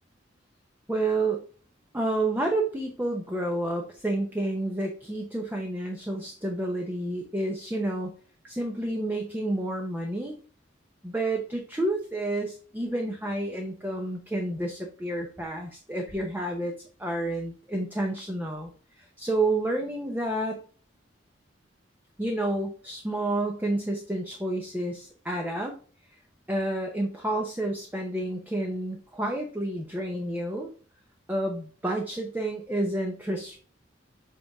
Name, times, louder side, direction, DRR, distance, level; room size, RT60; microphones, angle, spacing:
voice 1, 0.9-1.4 1.9-8.1 8.4-10.4 11.0-16.7 17.0-18.7 19.0-20.6 22.2-25.7 26.5-30.7 31.3-33.6, right 1 dB, 10° right, 2 dB, 0.7 m, -30 dB
7.7 x 3.4 x 3.5 m, 0.41 s
head